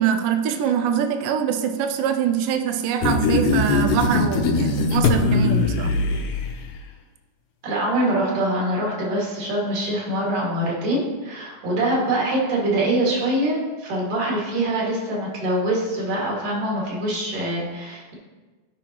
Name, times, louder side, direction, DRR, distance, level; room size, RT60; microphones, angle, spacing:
voice 1, 0.0-6.0, right 8 dB, 90° right, 7 dB, 2.3 m, -24 dB
sound 1, 3.0-6.7, left 3 dB, 85° left, 2.6 m, -21 dB
voice 2, 7.6-18.1, right 1 dB, 70° right, -4 dB, 3.7 m, -24 dB
15.0 x 5.7 x 3.0 m, 1.3 s
omnidirectional pair, 3.8 m